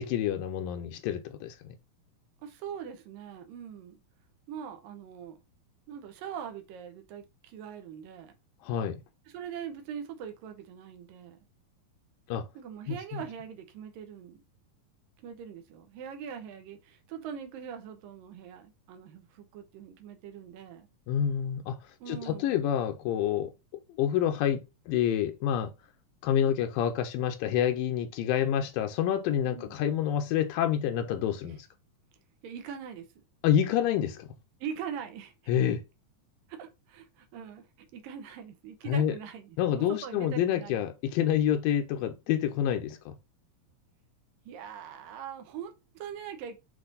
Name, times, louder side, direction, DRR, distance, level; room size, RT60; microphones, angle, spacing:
voice 1, 0.0-1.6 8.6-9.0 12.3-12.5 12.9-13.2 21.1-21.8 22.1-23.5 23.9-25.7 26.2-31.7 33.4-34.3 35.5-35.8 38.9-39.2 39.6-43.2, left 10 dB, 85° left, 2.4 m, -28 dB
voice 2, 2.4-4.0 4.5-5.4 5.9-8.3 9.3-11.4 12.6-14.4 15.2-20.9 22.0-22.6 29.4-29.8 31.4-31.6 32.4-33.1 34.6-35.5 36.5-40.8 44.5-46.6, right 8 dB, 80° right, 2.6 m, -42 dB
7.7 x 3.4 x 3.9 m
omnidirectional pair, 3.9 m